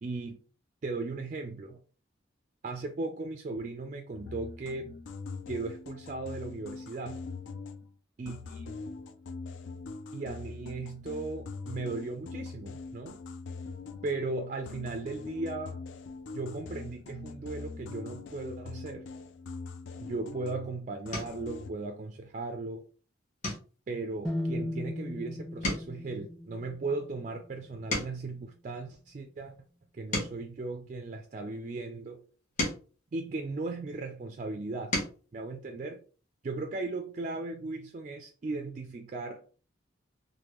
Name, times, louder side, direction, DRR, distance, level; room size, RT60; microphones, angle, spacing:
voice 1, 0.0-0.4 0.8-1.8 2.6-5.0 5.5-7.2 8.2-8.7 10.1-13.2 14.0-15.8 16.3-19.1 20.0-22.8 23.9-29.5 29.9-32.2 33.1-34.9 35.3-36.0 36.4-39.4, right 3 dB, 40° right, 0.3 m, -37 dB
sound 1, 4.1-7.9 8.3-14.4 14.7-20.8 21.1-21.7, left 4 dB, 70° left, 0.3 m, -43 dB
sound 2, 20.2-20.5 21.1-21.5 22.0-22.4 22.7-22.9 23.4-25.2 25.5-28.4 29.0-31.5 32.2-34.0 34.6-35.3 36.7-36.8 37.1-37.3, left 2 dB, 40° left, 1.1 m, -38 dB
sound 3, 24.2-28.2, left 1 dB, ahead, 0.8 m, -37 dB
3.4 x 2.1 x 3.0 m
head